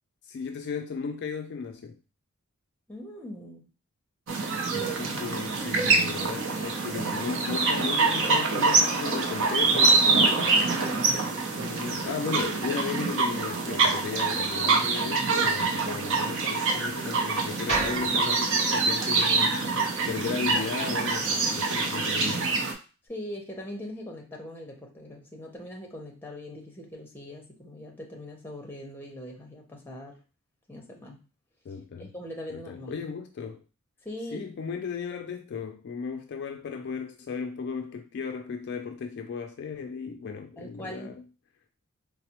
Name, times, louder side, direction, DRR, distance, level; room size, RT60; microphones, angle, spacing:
voice 1, 0.3-2.0 4.7-10.6 11.5-19.6 20.1-22.5 31.7-32.1 32.5-33.6 34.3-41.2, left 5 dB, 50° left, 0.3 m, -35 dB
voice 2, 2.9-3.6 4.7-5.2 5.6-5.9 10.6-11.0 23.1-30.2 30.7-31.2 32.0-33.0 34.0-34.5 40.6-41.2, left 1 dB, 10° left, 0.7 m, -41 dB
sound 1, 4.3-22.7, right 3 dB, 60° right, 0.6 m, -25 dB
sound 2, 17.7-21.8, right 2 dB, 30° right, 1.7 m, -37 dB
4.0 x 2.0 x 2.9 m
head